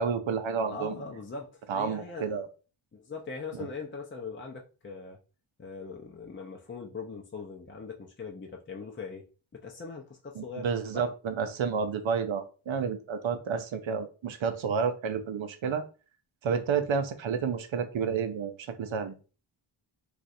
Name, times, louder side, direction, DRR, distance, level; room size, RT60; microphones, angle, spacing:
voice 1, 0.0-0.9 1.7-2.5 10.4-15.8 16.4-18.5 18.8-19.1, right 6 dB, 65° right, 0.6 m, -30 dB
voice 2, 0.7-2.4 2.9-5.2 5.6-9.3 9.5-10.7 10.9-11.1, left 4 dB, 25° left, 0.5 m, -41 dB
2.4 x 2.4 x 4.0 m
cardioid pair, 60°, 50 cm